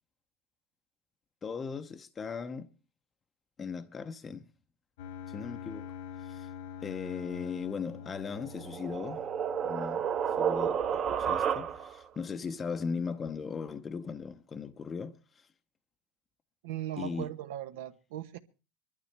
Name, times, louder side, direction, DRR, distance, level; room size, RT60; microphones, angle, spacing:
voice 1, 1.4-2.7 3.6-4.4 5.3-5.9 6.2-6.5 6.8-9.3 9.6-10.0 10.4-15.5 17.0-17.3, left 5 dB, 20° left, 0.7 m, -38 dB
sound 1, 5.0-11.0, left 8 dB, 85° left, 2.2 m, -45 dB
sound 2, 8.3-12.1, right 8 dB, 30° right, 0.9 m, -31 dB
voice 2, 16.6-18.4, right 12 dB, 80° right, 1.1 m, -38 dB
24.0 x 12.0 x 3.3 m
supercardioid pair, 155°, 0 cm